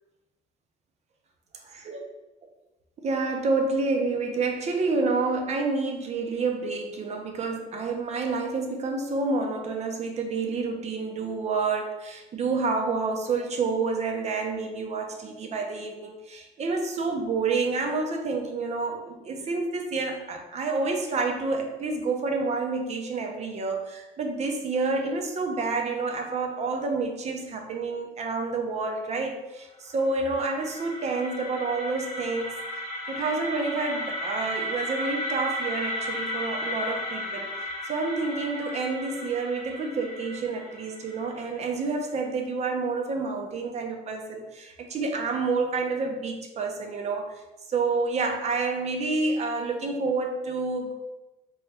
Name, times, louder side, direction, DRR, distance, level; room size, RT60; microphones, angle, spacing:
voice 1, 1.6-2.0 3.0-32.6 33.1-37.5 37.8-47.4 47.7-50.9, right 3 dB, 40° right, 3 dB, 0.5 m, -29 dB
sound 1, 29.9-41.8, left 1 dB, 20° left, 0.9 m, -34 dB
3.0 x 2.2 x 3.2 m, 1.0 s
cardioid pair, 110°, 17 cm